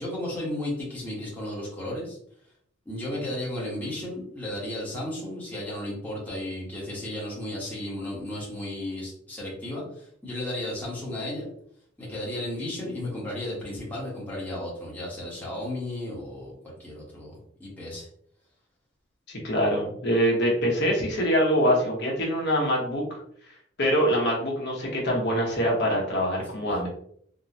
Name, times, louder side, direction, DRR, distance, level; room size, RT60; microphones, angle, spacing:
voice 1, 0.0-2.2 2.9-11.5 12.0-18.1 26.6-26.9, left 1 dB, 10° left, -5 dB, 0.9 m, -34 dB
voice 2, 19.3-23.2 23.8-26.9, equal, 60° left, -2 dB, 0.9 m, -24 dB
3.6 x 2.1 x 2.7 m, 0.65 s
head